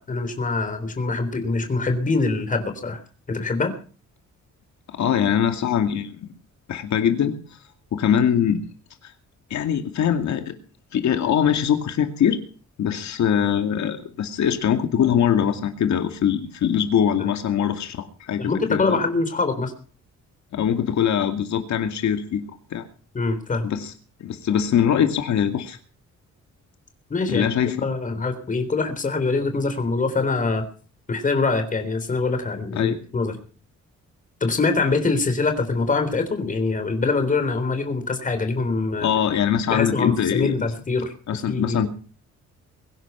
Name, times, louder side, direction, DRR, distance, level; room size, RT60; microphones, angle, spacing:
voice 1, 0.1-3.0 3.3-3.7 17.2-17.3 18.4-19.7 23.1-23.7 27.1-27.5 27.8-30.6 31.1-33.3 34.4-39.1 39.7-41.1 41.5-41.9, left 3 dB, 25° left, 8 dB, 3.7 m, -24 dB
voice 2, 4.9-6.2 6.7-7.6 7.9-8.6 9.0-9.1 9.5-10.5 10.9-12.4 12.8-19.0 20.5-22.8 23.6-23.9 24.2-25.8 27.3-27.9 32.7-33.0 39.0-40.7 41.3-41.9, left 8 dB, 70° left, 7 dB, 2.4 m, -22 dB
23.0 x 11.0 x 5.7 m, 0.40 s
wide cardioid pair, 180°, 29 cm